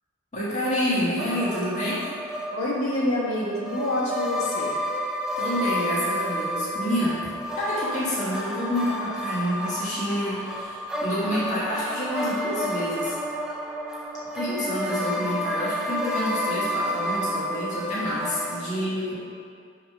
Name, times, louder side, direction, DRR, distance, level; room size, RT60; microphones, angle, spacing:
voice 1, 0.3-2.0 5.4-7.2 7.6-13.1 14.3-19.1, equal, 35° left, -9 dB, 1.7 m, -28 dB
sound 1, 1.2-18.6, equal, 5° right, 0.4 m, -30 dB
voice 2, 2.5-4.8 18.7-18.9, left 1 dB, 85° left, -6 dB, 1.7 m, -27 dB
6.7 x 3.7 x 5.6 m, 2.1 s
head